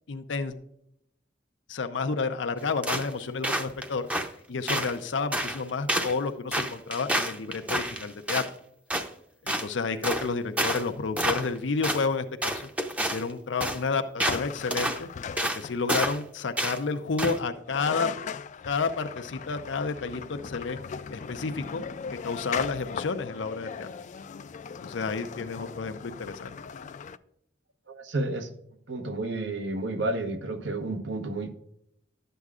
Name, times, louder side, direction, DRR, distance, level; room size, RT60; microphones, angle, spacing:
voice 1, 0.1-0.5 1.7-4.1 4.5-8.4 9.4-12.7 13.0-15.1 15.5-18.1 18.6-20.8 21.1-21.8 22.2-23.9 24.8-26.5, left 4 dB, 85° left, 7 dB, 0.6 m, -30 dB
sound 1, 2.8-3.1 3.4-4.3 4.7-5.0 5.3-5.6 5.9-6.1 6.5-8.5 8.9-9.1 9.5-9.7 10.0-10.3 10.6-10.8 11.2-11.6 11.8-12.0 12.4-13.3 13.6-13.8 14.2-14.4 14.7-15.0 15.4-15.6 15.9-16.2 16.6-16.8 17.2-17.4, right 1 dB, 10° right, 0.6 m, -28 dB
sound 2, 14.3-16.0 17.4-17.5 17.7-27.2, left 6 dB, 40° left, 0.3 m, -38 dB
voice 2, 27.9-28.5 28.9-31.5, right 2 dB, 80° right, 6 dB, 1.0 m, -31 dB
11.5 x 7.9 x 2.4 m, 0.75 s
head